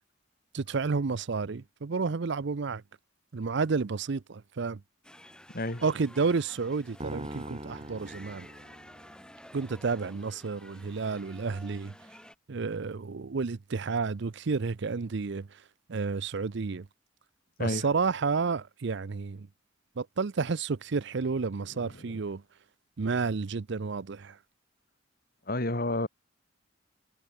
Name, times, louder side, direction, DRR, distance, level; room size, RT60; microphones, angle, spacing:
voice 1, 0.5-2.8 3.3-4.8 5.8-8.5 9.5-11.9 12.5-15.5 15.9-16.9 17.6-19.5 20.0-22.4 23.0-24.4, right 4 dB, 65° right, 0.6 m, -31 dB
sound 1, 5.0-12.3, left 1 dB, 5° left, 5.0 m, -52 dB
voice 2, 5.5-5.8 17.6-17.9 21.8-22.2 25.5-26.1, left 1 dB, 50° left, 3.4 m, -31 dB
sound 2, 7.0-9.4, right 1 dB, 30° right, 7.6 m, -42 dB
head